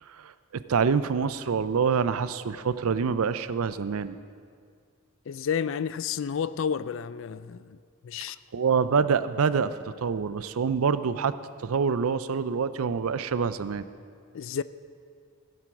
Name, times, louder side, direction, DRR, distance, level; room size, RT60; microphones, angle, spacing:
voice 1, 0.1-4.2 8.5-13.8, right 6 dB, 70° right, 0.5 m, -26 dB
voice 2, 5.3-7.8 8.0-8.4 14.3-14.6, left 7 dB, 60° left, 0.4 m, -30 dB
16.0 x 7.7 x 5.9 m
head